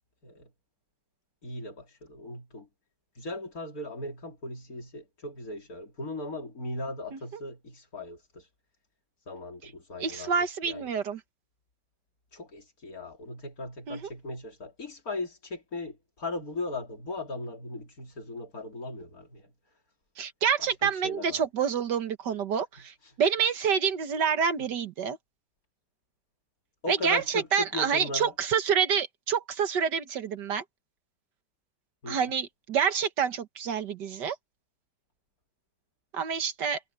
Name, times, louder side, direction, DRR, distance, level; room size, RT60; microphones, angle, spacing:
voice 1, 1.4-2.7 3.2-8.5 9.3-10.3 10.6-10.9 12.3-19.5 20.6-21.4 24.6-24.7 26.8-28.3 32.0-32.3, left 2 dB, 50° left, 4.0 m, -38 dB
voice 2, 10.0-11.2 13.9-14.0 20.2-25.2 26.9-30.6 32.1-34.4 36.1-36.8, right 7 dB, 65° right, 1.9 m, -27 dB
omnidirectional pair, 2.0 m